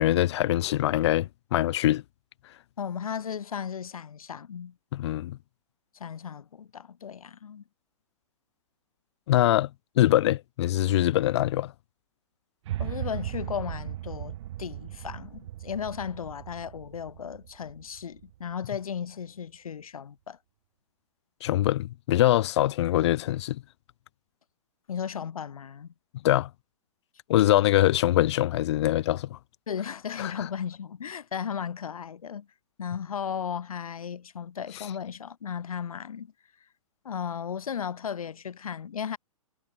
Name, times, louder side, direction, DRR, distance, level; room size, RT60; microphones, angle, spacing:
voice 1, 0.0-2.0 4.9-5.4 9.3-9.7 10.0-11.7 21.4-23.6 26.2-26.5 27.3-29.4 30.2-30.3, left 14 dB, 50° left, 0.4 m, -23 dB
voice 2, 2.8-4.7 5.9-7.6 12.8-20.4 24.9-25.9 29.7-32.5 32.8-36.3 37.0-39.2, left 7 dB, 75° left, 1.2 m, -35 dB
sound 1, 12.7-18.8, right 13 dB, 55° right, 0.9 m, -37 dB
hypercardioid pair, 125°, 18 cm